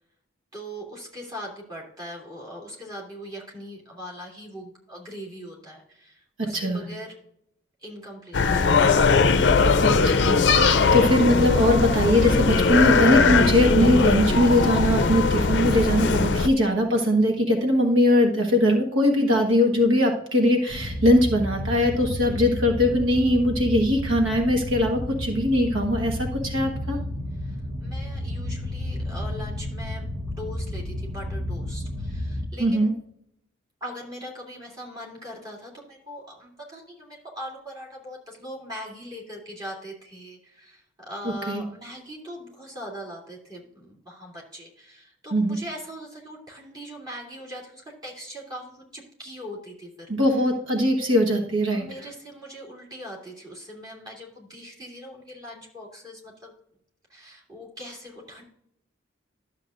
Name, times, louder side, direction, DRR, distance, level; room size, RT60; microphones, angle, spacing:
voice 1, 0.5-7.1 7.8-9.1 22.1-22.4 27.3-30.1 30.4-32.9 33.8-49.9 50.3-50.4 51.7-56.5 57.1-58.4, equal, 20° right, -4 dB, 2.9 m, -41 dB
sound 1, 8.3-16.5, left 4 dB, 55° left, 0.5 m, -20 dB
voice 2, 9.8-27.0 32.6-32.9 41.5-41.6 45.3-45.6 50.1-51.8, left 1 dB, 80° right, 2 dB, 1.3 m, -21 dB
sound 2, 20.7-32.5, left 1 dB, 55° right, 1.3 m, -32 dB
12.0 x 7.4 x 2.5 m, 0.72 s
head